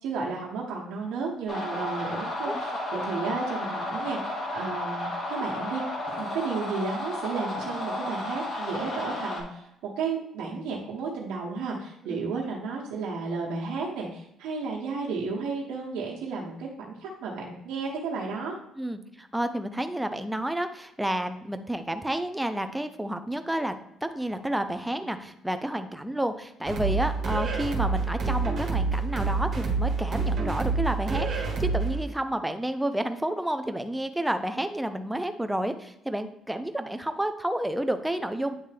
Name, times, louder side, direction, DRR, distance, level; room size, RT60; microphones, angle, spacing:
voice 1, 0.0-5.8 6.2-9.7 10.0-18.6, right 4 dB, 80° right, -3 dB, 1.0 m, -33 dB
sound 1, 1.5-9.4, left 1 dB, 45° left, 1.8 m, -33 dB
voice 2, 18.8-23.7 24.0-38.6, right 1 dB, 5° right, 8 dB, 0.5 m, -30 dB
sound 2, 26.7-32.0, right 4 dB, 50° right, 1.5 m, -27 dB
8.9 x 3.2 x 3.4 m, 0.81 s
cardioid pair, 100°, 0 cm